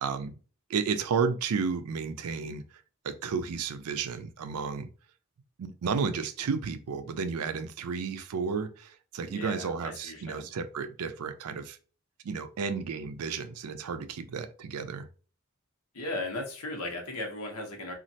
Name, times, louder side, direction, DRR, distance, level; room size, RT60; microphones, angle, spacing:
voice 1, 0.0-0.4 0.7-2.6 3.0-4.9 5.6-11.8 12.2-15.1, right 5 dB, 90° right, 0.4 m, -32 dB
voice 2, 9.2-10.5 15.9-17.9, left 2 dB, 85° left, 0.9 m, -37 dB
3.1 x 2.4 x 2.7 m
head